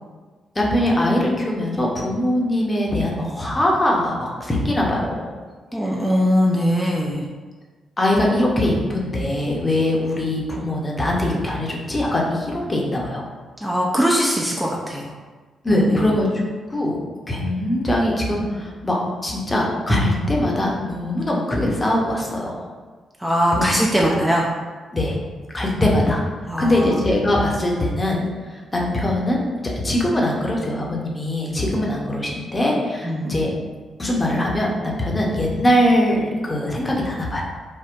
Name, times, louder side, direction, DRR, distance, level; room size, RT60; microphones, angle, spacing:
voice 1, 0.5-5.2 5.8-5.9 8.0-13.2 15.6-16.3 16.7-17.0 17.3-22.7 23.5-23.7 24.1-24.2 24.9-25.2 25.5-26.2 26.6-33.5 34.0-37.4, left 1 dB, 25° left, -2 dB, 0.8 m, -22 dB
voice 2, 5.7-7.3 13.6-15.1 15.9-16.0 23.2-24.4 25.8-25.9 26.5-26.9 33.0-33.5, equal, 5° right, -3 dB, 0.4 m, -21 dB
3.6 x 2.1 x 2.5 m, 1.4 s
hypercardioid pair, 45°, 0 cm